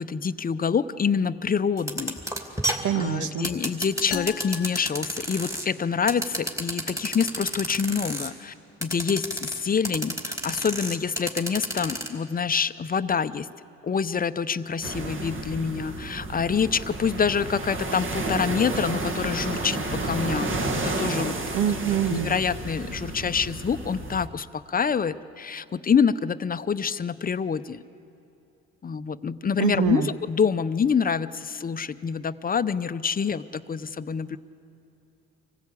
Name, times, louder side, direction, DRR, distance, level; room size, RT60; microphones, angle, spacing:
voice 1, 0.0-2.2 2.9-8.5 8.8-13.5 13.8-21.6 22.1-27.8 28.8-34.4, left 6 dB, 30° left, 13 dB, 0.6 m, -26 dB
sound 1, 1.8-5.7 6.1-8.3 8.8-9.6 9.8-12.1, equal, 10° right, 2.6 m, -30 dB
voice 2, 2.8-3.5 21.5-22.3 29.6-30.1, right 9 dB, 80° right, 9 dB, 1.2 m, -25 dB
sound 2, 4.1-5.9, left 13 dB, 85° left, 0.8 m, -39 dB
sound 3, 14.8-24.3, right 2 dB, 40° right, 1.7 m, -31 dB
25.5 x 16.0 x 8.4 m, 2.9 s
cardioid pair, 90°, 30 cm